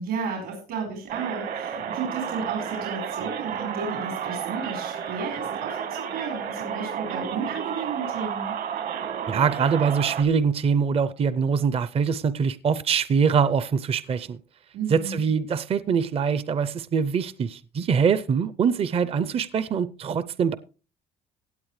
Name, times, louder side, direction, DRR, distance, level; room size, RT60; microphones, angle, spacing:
voice 1, 0.0-8.5 14.7-15.2, right 5 dB, 85° right, 4.5 m, -33 dB
sound 1, 1.1-10.2, right 8 dB, 65° right, 1.4 m, -32 dB
voice 2, 9.3-14.4 14.9-20.5, right 6 dB, 35° right, 0.5 m, -23 dB
17.0 x 8.5 x 3.2 m
cardioid pair, 110°, 17 cm